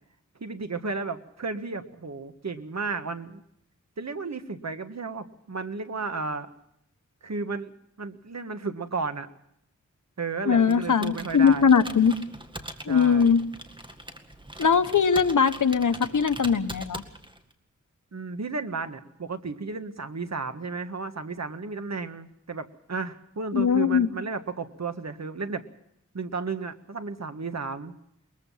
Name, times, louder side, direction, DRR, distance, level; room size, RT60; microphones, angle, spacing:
voice 1, 0.4-3.4 4.0-6.5 7.2-9.3 10.2-11.7 12.9-13.3 18.1-25.6 26.1-27.9, right 4 dB, 60° right, 9 dB, 1.7 m, -33 dB
voice 2, 10.5-12.2 12.9-13.4 14.6-17.0 23.5-24.1, left 6 dB, 80° left, 11 dB, 1.2 m, -21 dB
Computer keyboard, 10.6-17.5, right 1 dB, 15° right, 2.0 m, -42 dB
22.0 x 21.5 x 5.7 m, 0.78 s
wide cardioid pair, 85°, 30 cm